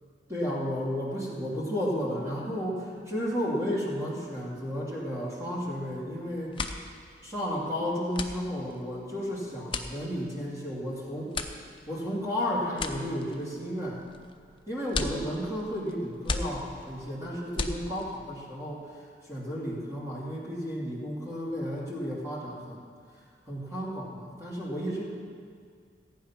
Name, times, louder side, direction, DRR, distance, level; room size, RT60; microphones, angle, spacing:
voice 1, 0.3-6.5 7.2-11.4 11.9-14.0 14.7-18.9 19.2-22.8 23.5-25.0, equal, 15° right, -7 dB, 2.7 m, -33 dB
sound 1, 5.8-6.1 6.4-18.3, left 3 dB, 25° left, 0.7 m, -37 dB
15.0 x 9.0 x 5.9 m, 2.1 s
head